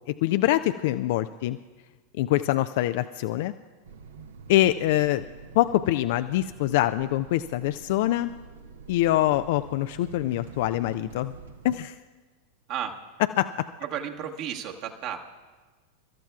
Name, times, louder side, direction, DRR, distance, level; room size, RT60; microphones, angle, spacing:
voice 1, 0.1-1.6 2.1-3.5 4.5-5.2 5.5-8.3 8.9-11.3 11.6-12.0 13.4-13.7, left 14 dB, 55° left, 11 dB, 0.3 m, -24 dB
sound 1, 3.8-11.9, right 5 dB, 65° right, 0.9 m, -47 dB
voice 2, 13.8-15.2, right 9 dB, 45° right, 3 dB, 1.4 m, -33 dB
29.5 x 13.5 x 2.4 m, 1.4 s
figure-of-eight pair, 90°, 0 cm